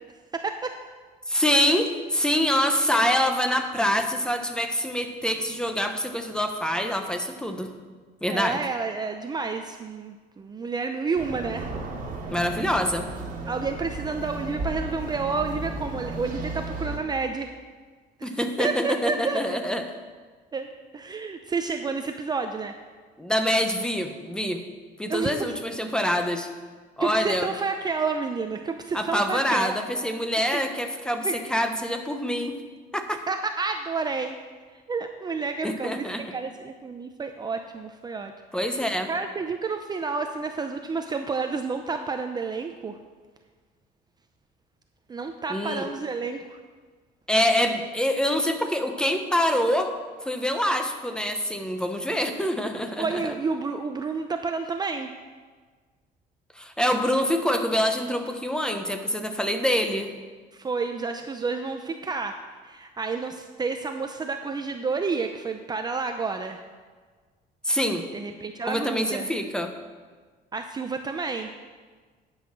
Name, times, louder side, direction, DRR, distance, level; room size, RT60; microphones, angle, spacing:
voice 1, 0.3-0.8 8.3-11.7 13.5-17.5 18.2-19.6 20.5-22.7 25.1-25.3 27.0-29.7 30.5-30.6 31.2-31.4 33.3-34.4 34.7-36.1 36.3-38.3 38.7-38.8 39.1-43.0 45.1-46.6 53.0-55.1 60.5-62.4 62.6-66.6 68.1-69.3 70.5-71.5, right 4 dB, 25° right, 6 dB, 0.5 m, -30 dB
voice 2, 1.3-7.7 8.2-8.6 12.3-13.1 18.2-19.8 23.2-24.6 25.0-26.5 27.0-27.5 28.9-32.6 32.9-33.2 35.6-36.2 38.5-39.1 45.5-45.9 47.3-49.9 50.2-53.3 56.6-60.1 67.6-68.1 68.6-69.7, equal, 5° left, 6 dB, 0.9 m, -25 dB
sound 1, 11.1-17.0, right 2 dB, 55° right, 1.6 m, -34 dB
10.0 x 5.7 x 6.1 m, 1.5 s
cardioid pair, 110°, 17 cm